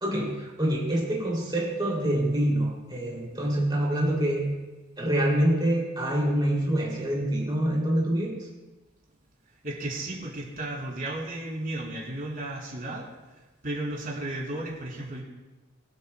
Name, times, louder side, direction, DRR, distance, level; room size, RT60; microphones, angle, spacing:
voice 1, 0.0-4.5 5.0-8.5, right 1 dB, 20° right, -3 dB, 2.8 m, -26 dB
voice 2, 9.6-13.1 13.6-15.2, right 1 dB, 45° right, -3 dB, 3.2 m, -34 dB
24.0 x 8.6 x 2.2 m, 1.2 s
head